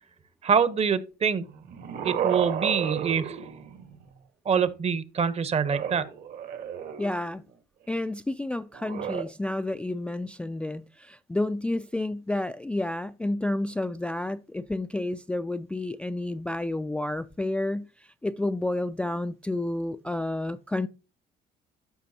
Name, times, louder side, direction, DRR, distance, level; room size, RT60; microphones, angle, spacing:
voice 1, 0.4-1.5 2.0-3.3 4.5-6.1, right 6 dB, 40° right, 0.9 m, -25 dB
sound 1, 1.5-4.1 5.6-7.4 8.7-9.2, right 8 dB, 65° right, 1.6 m, -32 dB
voice 2, 7.0-7.4 7.9-20.9, left 2 dB, 5° left, 0.3 m, -30 dB
13.0 x 5.1 x 2.8 m
cardioid pair, 110°, 17 cm